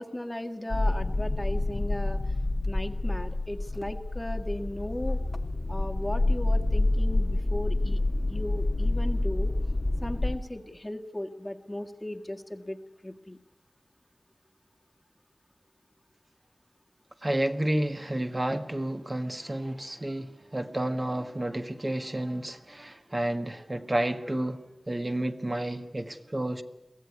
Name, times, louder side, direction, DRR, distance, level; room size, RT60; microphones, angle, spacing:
voice 1, 0.0-2.2 2.6-5.2 5.7-8.0 8.3-9.5 10.0-13.4, left 1 dB, 20° left, 1.7 m, -36 dB
sound 1, 0.7-10.4, left 2 dB, 55° left, 1.3 m, -28 dB
voice 2, 17.2-24.6 24.9-26.6, right 1 dB, 35° right, 1.5 m, -30 dB
23.0 x 16.0 x 9.7 m
wide cardioid pair, 55°, 0 cm